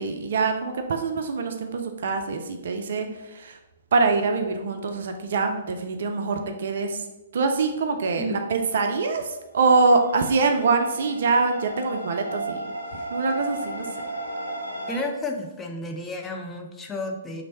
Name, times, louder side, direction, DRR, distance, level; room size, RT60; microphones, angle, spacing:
voice 1, 0.0-3.6 3.9-7.1 7.3-12.7 13.1-13.9, right 4 dB, 55° right, 5 dB, 0.4 m, -24 dB
sound 1, 10.0-15.0, right 1 dB, 75° left, 0.6 m, -34 dB
voice 2, 14.9-17.4, left 1 dB, 10° left, 2 dB, 0.4 m, -32 dB
3.1 x 2.5 x 4.1 m, 1.0 s
figure-of-eight pair, 120°, 0 cm